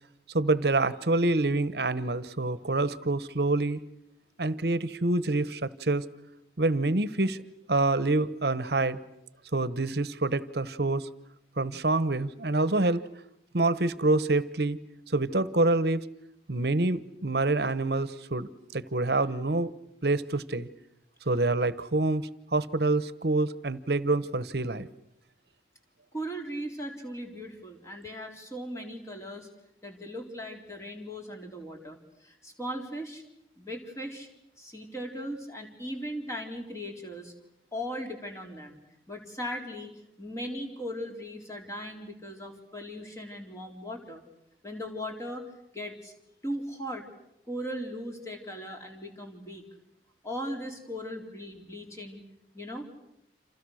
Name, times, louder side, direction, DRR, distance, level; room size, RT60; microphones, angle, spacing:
voice 1, 0.3-3.8 4.4-6.0 6.6-7.4 7.7-9.0 9.5-11.1 11.6-13.0 13.5-14.8 15.1-16.1 16.5-19.7 20.0-20.7 21.3-24.9, right 2 dB, 65° right, 16 dB, 1.1 m, -26 dB
voice 2, 26.1-29.5 29.8-33.2 33.6-34.3 34.6-37.3 37.7-38.8 39.1-39.9 40.2-44.2 44.6-45.5 45.7-46.1 46.4-47.0 47.5-49.6 50.2-52.2 52.5-52.9, equal, 15° left, 2 dB, 3.9 m, -38 dB
29.5 x 27.5 x 6.5 m, 0.79 s
head